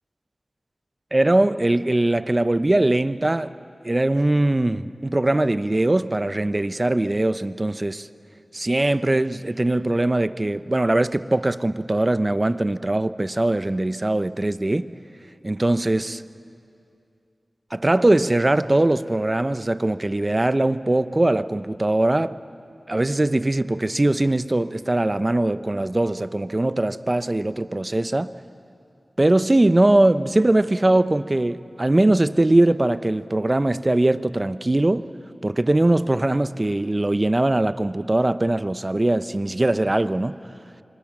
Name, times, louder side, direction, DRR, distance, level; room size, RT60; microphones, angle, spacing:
voice 1, 1.1-3.5 3.8-8.1 8.5-14.9 15.4-16.2 17.7-22.3 22.9-28.3 29.2-35.1 35.4-40.4, right 1 dB, 35° right, 0.7 m, -21 dB
26.5 x 25.0 x 6.1 m
cardioid pair, 45°, 0 cm